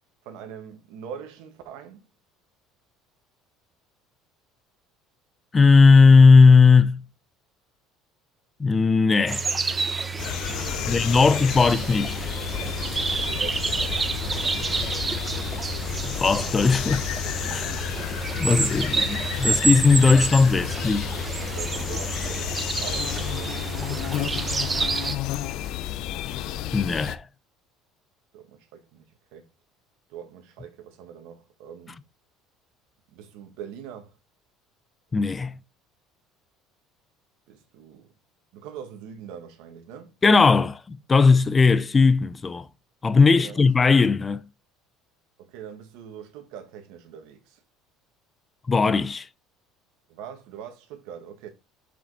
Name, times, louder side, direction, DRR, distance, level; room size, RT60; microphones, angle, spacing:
voice 1, 0.2-2.1 10.6-11.3 13.1-13.9 21.6-23.6 28.3-29.5 30.1-32.0 33.1-34.2 37.5-38.1 38.5-40.1 43.4-43.6 45.4-47.6 50.1-51.5, right 8 dB, 75° right, 1.8 m, -42 dB
voice 2, 5.5-7.0 8.6-9.5 10.9-12.3 16.0-17.9 18.4-21.1 26.7-27.2 35.1-35.6 40.2-42.7 43.0-44.4 48.7-49.3, left 4 dB, 20° left, 0.5 m, -18 dB
sound 1, 9.3-25.2, right 4 dB, 20° right, 0.9 m, -29 dB
sound 2, 10.2-27.2, left 12 dB, 65° left, 0.7 m, -32 dB
sound 3, 12.4-20.7, right 1 dB, 55° right, 3.0 m, -42 dB
7.1 x 5.1 x 4.2 m
cardioid pair, 120°, 0 cm